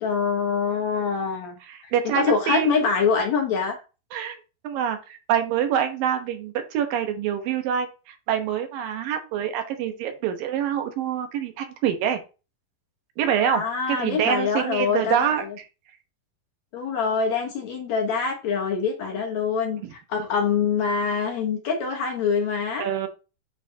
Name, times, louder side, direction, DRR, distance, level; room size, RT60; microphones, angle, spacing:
voice 1, 0.0-1.6 2.0-3.8 13.5-15.6 16.7-22.9, left 5 dB, 60° left, 2.2 m, -25 dB
voice 2, 1.7-2.7 4.1-4.4 4.6-12.2 13.2-15.4 19.8-19.9 22.8-23.1, right 9 dB, 80° right, 2.7 m, -26 dB
8.8 x 4.4 x 2.7 m
omnidirectional pair, 4.0 m